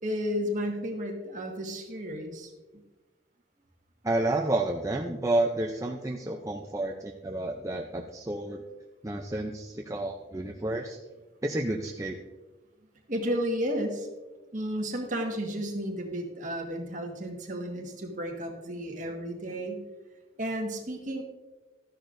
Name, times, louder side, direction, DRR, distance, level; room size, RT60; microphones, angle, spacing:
voice 1, 0.0-2.8 13.1-14.1 14.5-19.8 20.4-21.2, equal, 45° right, 1 dB, 1.6 m, -33 dB
voice 2, 4.0-8.6 9.0-11.0 11.4-12.2, right 2 dB, 15° right, 1 dB, 0.5 m, -30 dB
13.0 x 10.5 x 2.6 m, 1.2 s
head